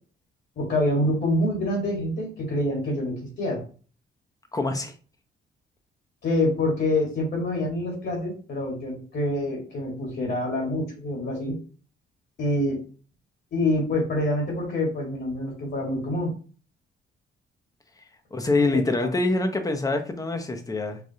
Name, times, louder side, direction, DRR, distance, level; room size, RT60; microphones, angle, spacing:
voice 1, 0.6-3.6 6.2-11.5 12.4-12.8 13.5-16.3 18.7-19.1, left 1 dB, 60° left, -1 dB, 1.6 m, -26 dB
voice 2, 4.5-4.9 18.3-21.0, left 2 dB, 15° left, 6 dB, 0.7 m, -25 dB
4.9 x 2.4 x 2.7 m, 0.39 s
cardioid pair, 90°, 20 cm